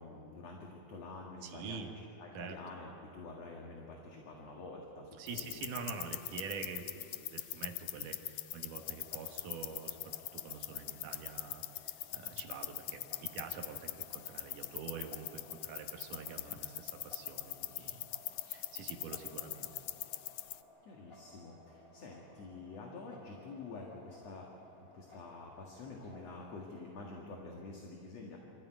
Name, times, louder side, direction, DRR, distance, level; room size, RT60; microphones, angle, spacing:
voice 1, 0.0-1.9 2.2-5.6 20.8-28.4, left 3 dB, 50° left, -1 dB, 2.8 m, -48 dB
voice 2, 1.4-1.9 2.3-2.6 5.2-18.1 18.4-19.7, right 5 dB, 65° right, 3 dB, 3.0 m, -46 dB
sound 1, 5.3-20.6, left 15 dB, 80° left, 1.7 m, -43 dB
sound 2, 8.8-27.2, left 1 dB, 15° left, 3.2 m, -60 dB
26.0 x 14.5 x 9.2 m, 2.8 s
omnidirectional pair, 4.1 m